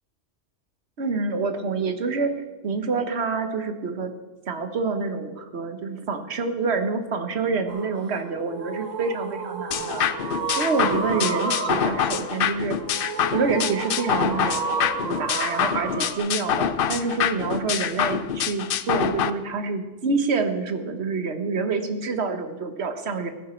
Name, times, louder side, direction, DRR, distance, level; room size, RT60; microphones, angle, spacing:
voice 1, 1.0-4.1 4.5-12.8 13.3-14.6 15.0-23.3, right 4 dB, 60° right, 8 dB, 1.4 m, -27 dB
sound 1, 7.7-16.2, right 4 dB, 75° right, 1.7 m, -31 dB
sound 2, 9.7-19.3, left 9 dB, 55° left, 0.7 m, -26 dB
16.0 x 10.0 x 4.4 m, 1.3 s
omnidirectional pair, 1.3 m